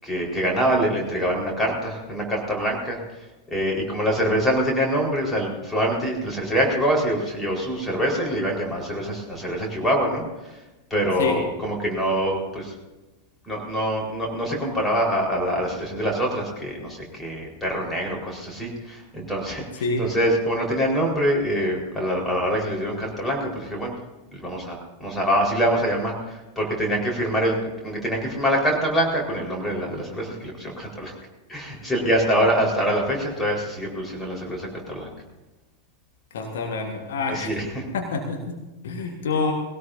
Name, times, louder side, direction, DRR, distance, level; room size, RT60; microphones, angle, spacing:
voice 1, 0.0-3.0 3.5-10.2 10.9-12.7 13.5-19.6 20.0-24.0 24.3-27.6 27.8-31.1 31.5-35.1 37.3-37.6, equal, 10° left, -1 dB, 4.4 m, -24 dB
voice 2, 11.1-11.5 19.7-20.2 36.3-37.5 37.9-39.5, left 3 dB, 60° left, 2 dB, 1.5 m, -27 dB
20.5 x 17.5 x 2.7 m, 1.1 s
figure-of-eight pair, 90°, 0 cm